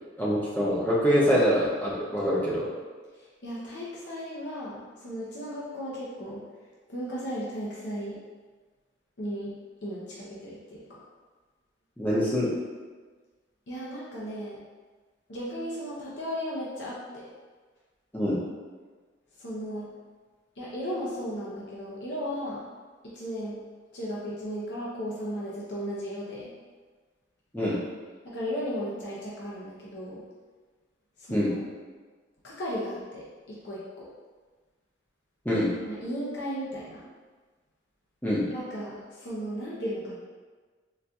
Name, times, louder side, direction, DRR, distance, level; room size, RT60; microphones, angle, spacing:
voice 1, 0.2-2.7 12.0-12.5 18.1-18.4 27.5-27.8 31.3-31.5 35.5-35.7 38.2-38.5, equal, 10° left, -7 dB, 0.6 m, -24 dB
voice 2, 3.4-6.4 6.9-8.2 9.2-9.5 9.8-11.0 13.7-14.6 15.3-17.2 19.4-19.9 20.6-22.6 23.1-23.6 23.9-26.5 28.2-30.2 31.3-31.6 32.4-34.1 35.8-37.0 38.5-38.9 39.2-40.2, equal, 65° left, -6 dB, 0.6 m, -35 dB
4.0 x 2.5 x 2.3 m, 1.4 s
head